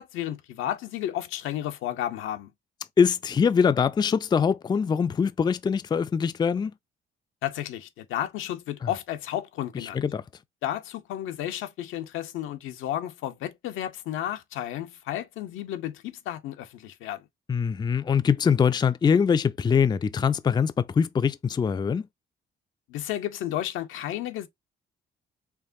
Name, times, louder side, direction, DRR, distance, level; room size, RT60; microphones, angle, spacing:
voice 1, 0.0-2.5 7.4-10.0 10.6-17.2 22.9-24.5, left 12 dB, 90° left, 0.7 m, -32 dB
voice 2, 3.0-6.7 9.7-10.2 17.5-22.1, left 6 dB, 20° left, 0.3 m, -23 dB
4.6 x 3.0 x 2.6 m
cardioid pair, 90°, 20 cm